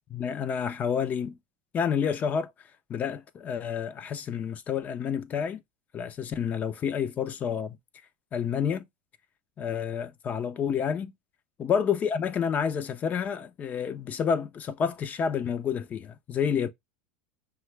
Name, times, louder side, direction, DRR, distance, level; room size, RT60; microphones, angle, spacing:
voice 1, 0.1-1.4 1.7-2.5 2.9-5.6 5.9-7.8 8.3-8.8 9.6-11.1 11.6-16.7, left 7 dB, 35° left, 0.6 m, -29 dB
5.6 x 2.3 x 3.2 m
hypercardioid pair, 90°, 5 cm